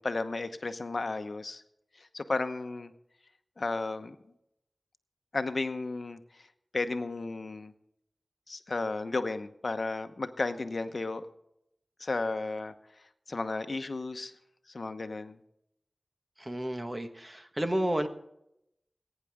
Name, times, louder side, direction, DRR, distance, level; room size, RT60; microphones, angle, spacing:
voice 1, 0.0-1.6 2.0-2.9 3.6-4.2 5.3-6.2 6.7-7.7 8.5-11.2 12.0-12.7 13.3-14.3 14.7-15.4, left 3 dB, 65° left, 9 dB, 0.9 m, -33 dB
voice 2, 16.4-18.1, right 1 dB, 25° right, 7 dB, 1.5 m, -31 dB
21.0 x 9.8 x 3.6 m, 0.79 s
wide cardioid pair, 55°, 0 cm